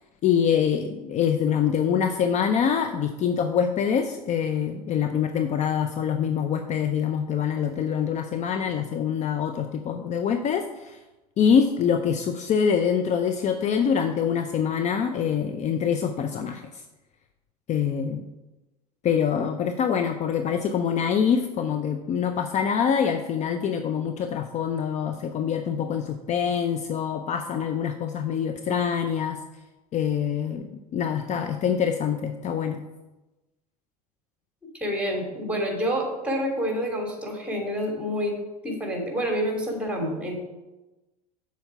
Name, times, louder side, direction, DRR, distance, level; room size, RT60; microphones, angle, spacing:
voice 1, 0.2-11.0 11.4-16.8 17.7-18.2 19.0-29.4 29.9-30.7 30.9-32.8, left 7 dB, 35° left, 7 dB, 0.6 m, -25 dB
voice 2, 34.7-38.3 38.6-40.4, equal, 5° right, 1 dB, 2.7 m, -28 dB
7.0 x 4.6 x 6.8 m, 1.1 s
hypercardioid pair, 80°, 19 cm